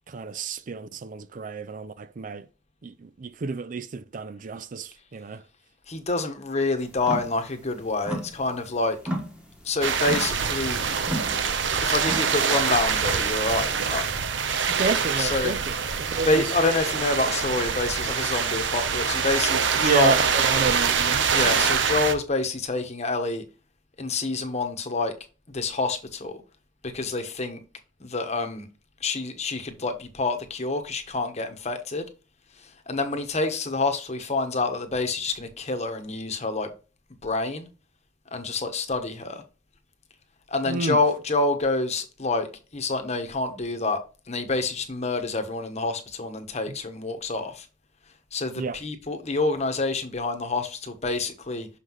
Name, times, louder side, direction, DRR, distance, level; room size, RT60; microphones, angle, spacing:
voice 1, 0.1-2.5 2.8-5.4 14.7-15.7 16.1-16.5 19.8-21.2 40.7-41.0 48.6-48.8, right 4 dB, 40° right, 0.4 m, -30 dB
voice 2, 5.9-9.0 9.6-10.8 11.8-14.1 15.2-15.5 16.2-20.2 21.3-23.4 24.0-25.1 25.5-26.4 26.8-27.6 28.0-28.7 29.0-32.1 32.9-36.7 37.2-37.7 38.3-39.4 40.5-42.5 42.7-44.0 44.3-47.7 48.3-51.7, left 3 dB, 35° left, 1.1 m, -27 dB
sound 1, 6.9-7.4 7.7-8.7 9.0-12.5, equal, 5° right, 1.4 m, -34 dB
sound 2, 9.8-22.1, right 6 dB, 65° right, 0.8 m, -25 dB
6.4 x 5.6 x 3.1 m
head